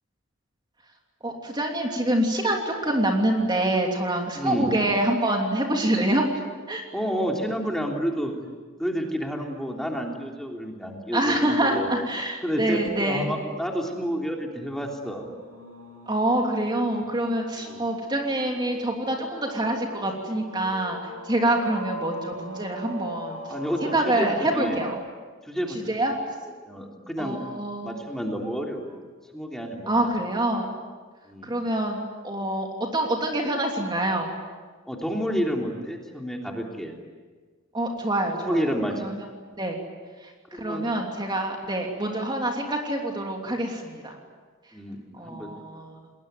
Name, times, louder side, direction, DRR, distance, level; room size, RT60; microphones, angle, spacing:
voice 1, 1.2-6.3 6.7-6.9 11.1-13.3 16.1-23.4 23.8-25.0 25.7-26.1 27.2-28.0 29.9-30.7 31.4-34.3 37.7-38.7 39.0-39.2 39.6-39.8 40.2-44.2 45.1-46.0, right 1 dB, 20° right, 1 dB, 3.1 m, -26 dB
voice 2, 4.3-4.8 6.9-8.3 8.8-11.9 12.4-15.2 17.7-17.8 23.5-24.8 25.4-25.8 26.6-27.4 27.8-29.0 29.3-30.1 31.2-31.5 34.9-36.9 38.3-39.0 40.5-40.9 44.7-45.5, equal, ahead, 0 dB, 3.3 m, -30 dB
sound 1, 14.6-24.9, right 1 dB, 85° right, 6.5 m, -40 dB
29.5 x 21.0 x 9.4 m, 1.4 s
head